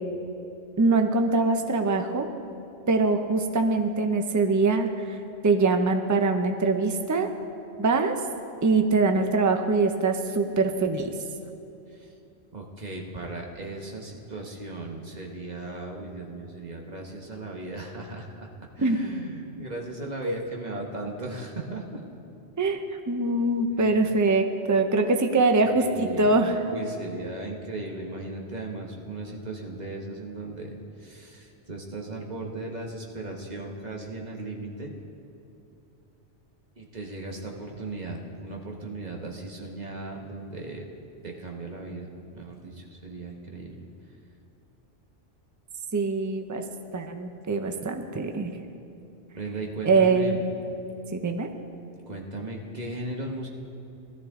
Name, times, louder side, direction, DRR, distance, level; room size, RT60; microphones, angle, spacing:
voice 1, 0.8-2.3 2.9-5.2 5.4-7.3 7.8-8.1 8.6-11.1 18.8-19.0 20.2-20.4 22.6-22.8 23.1-26.6 45.9-46.6 46.9-48.5 49.8-50.4 51.1-51.5, right 3 dB, 20° right, 6 dB, 0.5 m, -23 dB
voice 2, 12.5-18.5 18.8-22.0 25.6-26.3 26.7-30.7 31.0-34.9 36.8-40.9 41.2-43.7 49.3-50.4 52.1-53.5, right 2 dB, 40° right, 0 dB, 1.3 m, -37 dB
17.0 x 12.5 x 3.7 m, 2.8 s
omnidirectional pair, 1.2 m